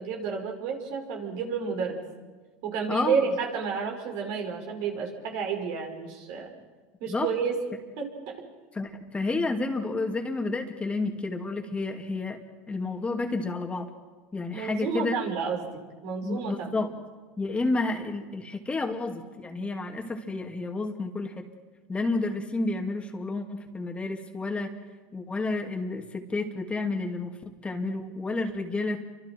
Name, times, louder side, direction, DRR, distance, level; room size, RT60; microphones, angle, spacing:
voice 1, 0.0-2.0 2.6-6.5 7.0-7.5 8.0-8.1 14.5-15.7 16.0-16.7, right 6 dB, 70° right, 1 dB, 5.6 m, -30 dB
voice 2, 2.9-3.2 7.1-7.3 8.7-12.4 12.7-13.9 14.3-15.2 16.2-17.0 17.4-21.5 21.9-24.7 25.1-29.0, left 3 dB, 15° left, 3 dB, 2.4 m, -30 dB
29.5 x 25.0 x 4.6 m, 1.3 s
supercardioid pair, 105°, 7 cm